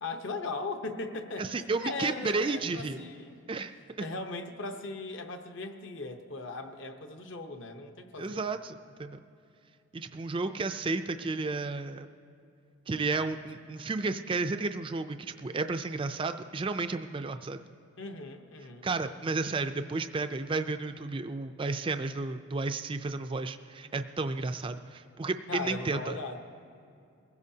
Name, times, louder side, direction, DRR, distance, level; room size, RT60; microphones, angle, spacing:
voice 1, 0.0-3.4 4.0-8.4 18.0-18.9 25.5-26.4, left 3 dB, 55° left, 6 dB, 0.9 m, -38 dB
voice 2, 1.4-3.0 3.5-4.1 8.2-9.2 9.9-12.1 12.9-17.6 18.8-26.2, right 3 dB, 25° right, 8 dB, 0.3 m, -32 dB
22.5 x 15.5 x 2.8 m, 2.5 s
head